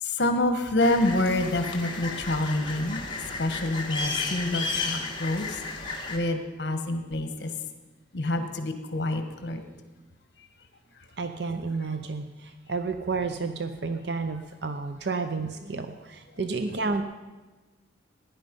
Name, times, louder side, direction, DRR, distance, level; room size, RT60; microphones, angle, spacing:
voice 1, 0.0-3.0 3.4-5.6 6.1-7.5 8.1-9.6, left 1 dB, 60° left, 8 dB, 1.3 m, -27 dB
Birds Long, 0.8-6.2, left 3 dB, 25° left, 1.6 m, -33 dB
voice 2, 11.2-17.0, right 4 dB, 60° right, 8 dB, 0.6 m, -31 dB
16.0 x 10.0 x 5.2 m, 1.2 s
head